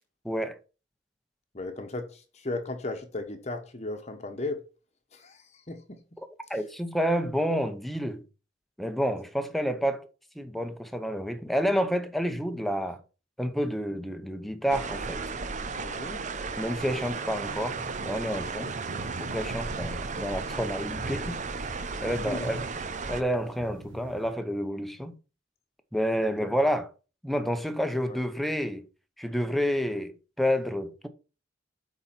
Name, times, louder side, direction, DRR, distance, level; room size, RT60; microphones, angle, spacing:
voice 1, 0.2-0.6 6.5-8.2 8.8-10.1 10.4-13.0 13.4-15.3 16.6-18.7 19.2-21.4 22.0-22.7 23.1-25.1 25.9-26.9 27.2-28.8 29.2-31.1, equal, ahead, 0.8 m, -29 dB
voice 2, 1.5-4.6 5.1-6.0 15.8-16.2 18.5-18.7 22.0-22.5 26.2-26.5 28.1-28.2, left 2 dB, 35° left, 1.1 m, -36 dB
sound 1, 14.7-23.2, right 4 dB, 40° right, 0.7 m, -35 dB
sound 2, 16.7-24.3, right 2 dB, 75° right, 0.8 m, -43 dB
8.7 x 4.1 x 5.9 m
head